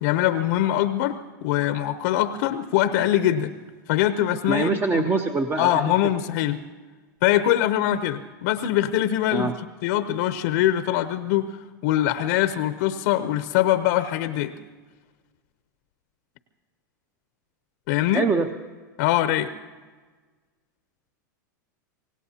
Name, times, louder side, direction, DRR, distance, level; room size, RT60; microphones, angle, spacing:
voice 1, 0.0-3.5 3.9-5.1 5.6-6.6 7.2-9.5 9.8-11.6 11.8-14.5 17.9-18.2 19.0-19.5, left 12 dB, 60° left, 11 dB, 0.7 m, -23 dB
voice 2, 4.5-5.7 9.3-9.5 18.1-18.5, right 3 dB, 20° right, 7 dB, 0.8 m, -23 dB
25.0 x 18.0 x 2.8 m, 1.4 s
hypercardioid pair, 110°, 10 cm